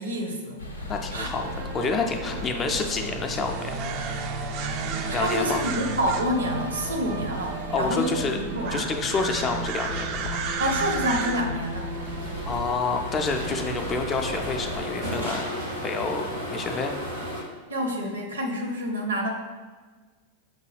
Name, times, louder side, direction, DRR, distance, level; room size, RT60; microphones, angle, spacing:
voice 1, 0.0-1.3 5.1-8.9 10.6-11.9 17.7-19.3, equal, 70° right, 2 dB, 0.7 m, -28 dB
sound 1, 0.6-14.8, left 2 dB, 80° left, 0.5 m, -37 dB
voice 2, 0.8-3.7 5.1-5.6 7.7-8.4 8.7-10.4 12.5-15.5 15.8-16.9, left 4 dB, 25° left, 4 dB, 0.4 m, -28 dB
sound 2, 1.4-15.9, right 5 dB, 40° right, 0.3 m, -34 dB
sound 3, 11.5-17.4, equal, 85° right, 1.0 m, -34 dB
5.9 x 2.2 x 3.2 m, 1.4 s
figure-of-eight pair, 90°, 0 cm